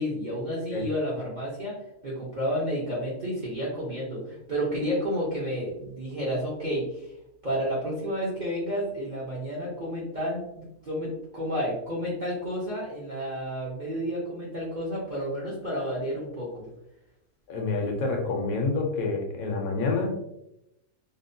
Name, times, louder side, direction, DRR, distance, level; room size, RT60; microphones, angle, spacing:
voice 1, 0.0-1.7 2.0-7.1 7.4-16.7, equal, 60° right, -7 dB, 0.4 m, -31 dB
voice 2, 17.5-20.1, left 3 dB, 70° left, 2 dB, 0.9 m, -28 dB
2.9 x 2.1 x 2.5 m, 0.85 s
omnidirectional pair, 1.7 m